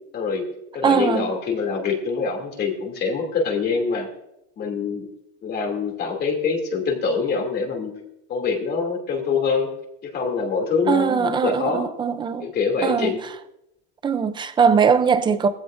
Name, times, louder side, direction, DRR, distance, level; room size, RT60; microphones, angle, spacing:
voice 1, 0.1-0.4 0.7-4.1 4.6-5.1 5.4-7.9 8.3-9.7 10.0-11.9 12.4-13.2, left 5 dB, 30° left, 2.7 m, -24 dB
voice 2, 0.8-1.3 10.9-12.5 12.8-13.2 14.0-15.5, right 6 dB, 15° right, 0.4 m, -20 dB
19.0 x 15.0 x 2.6 m
cardioid pair, 170°, 35 cm